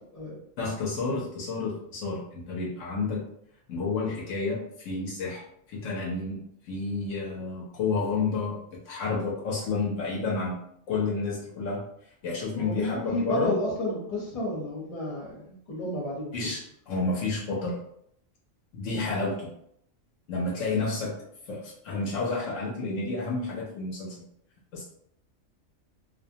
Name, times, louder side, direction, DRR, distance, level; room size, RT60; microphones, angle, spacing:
voice 1, 0.6-3.2 3.7-5.4 5.7-6.4 6.7-10.6 10.9-11.8 12.2-13.6 16.3-17.8 18.7-19.5 20.3-21.1 21.5-24.3 24.7-24.8, left 3 dB, 75° left, -3 dB, 0.9 m, -30 dB
voice 2, 12.6-16.3, left 1 dB, 30° left, -4 dB, 0.9 m, -31 dB
2.5 x 2.1 x 2.7 m, 0.72 s
omnidirectional pair, 1.4 m